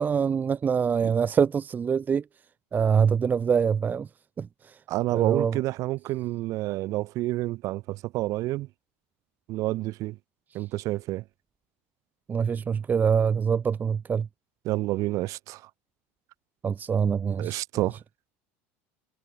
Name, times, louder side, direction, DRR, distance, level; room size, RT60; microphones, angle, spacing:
voice 1, 0.0-2.2 2.7-4.1 4.4-4.8 5.1-5.6 12.3-14.3 16.6-17.6, right 6 dB, 25° right, 1.5 m, -24 dB
voice 2, 4.9-8.7 9.5-10.2 10.5-11.2 14.6-15.7 17.4-18.0, right 18 dB, 55° right, 3.2 m, -29 dB
supercardioid pair, 110°, 7 cm